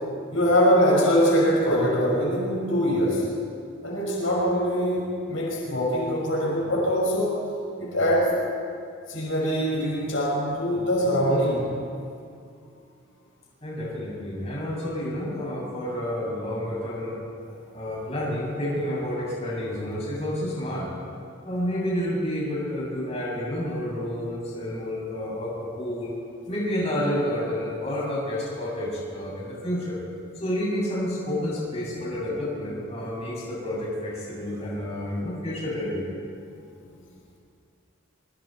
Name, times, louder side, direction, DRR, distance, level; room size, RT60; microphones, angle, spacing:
voice 1, 0.3-3.2 3.8-7.5 7.8-8.4 9.1-11.7 18.5-18.6 31.8-32.0, equal, 70° left, -4 dB, 5.8 m, -23 dB
voice 2, 13.6-17.1 17.7-20.9 21.4-26.1 26.5-30.0 30.4-36.0, left 1 dB, 30° left, -5 dB, 7.1 m, -29 dB
24.5 x 24.5 x 4.5 m, 2.4 s
head